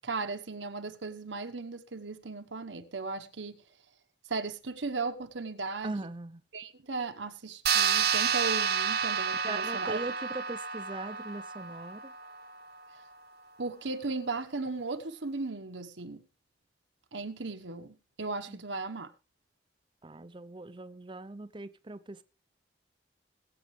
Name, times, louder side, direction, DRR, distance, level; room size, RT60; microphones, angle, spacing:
voice 1, 0.0-3.6 4.3-6.0 6.5-10.0 13.6-16.2 17.1-19.1, right 3 dB, 85° right, 1.2 m, -36 dB
voice 2, 5.8-6.4 9.4-12.1 18.5-18.6 20.0-22.2, right 2 dB, 25° right, 0.6 m, -40 dB
sound 1, 7.7-12.5, right 7 dB, 55° right, 1.0 m, -30 dB
21.0 x 8.7 x 3.3 m
head